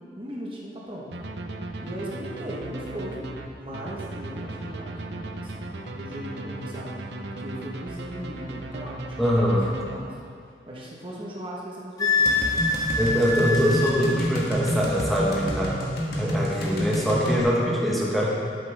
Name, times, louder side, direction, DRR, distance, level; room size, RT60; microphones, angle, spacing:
voice 1, 0.2-1.1 1.8-7.0 7.4-9.6 9.8-10.3 10.7-12.4, equal, 30° right, -4 dB, 1.1 m, -38 dB
sound 1, 1.1-10.4, right 2 dB, 80° right, 0.7 m, -36 dB
voice 2, 9.2-9.7 13.0-15.8 16.2-18.3, equal, ahead, -5 dB, 1.1 m, -23 dB
Wind instrument woodwind instrument, 12.0-14.0, left 3 dB, 20° left, 0.7 m, -24 dB
sound 2, 12.3-17.4, equal, 65° left, 1.5 m, -29 dB
12.5 x 7.5 x 3.4 m, 2.2 s
head